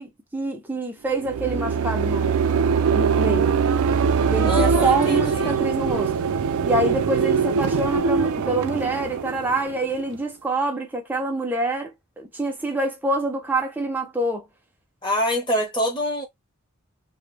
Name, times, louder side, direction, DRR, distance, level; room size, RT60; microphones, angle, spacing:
voice 1, 0.0-2.5 2.9-3.6 4.3-6.1 6.6-14.4, right 2 dB, 10° right, 0.4 m, -26 dB
sound 1, 1.1-10.2, right 6 dB, 70° right, 0.3 m, -22 dB
voice 2, 4.4-5.6 15.0-16.2, left 1 dB, 20° left, 0.8 m, -25 dB
2.1 x 2.0 x 3.1 m
head